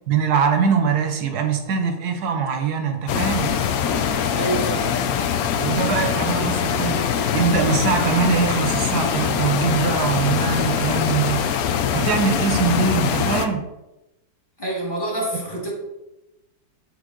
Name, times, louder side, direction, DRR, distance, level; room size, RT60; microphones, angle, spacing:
voice 1, 0.1-3.5 5.6-11.4 11.9-13.6, right 6 dB, 70° right, 6 dB, 1.2 m, -22 dB
sound 1, 3.1-13.5, left 8 dB, 70° left, 0.9 m, -23 dB
voice 2, 4.3-4.9 14.6-15.7, right 1 dB, 15° left, -4 dB, 1.4 m, -26 dB
7.3 x 3.5 x 3.7 m, 0.95 s
omnidirectional pair, 1.9 m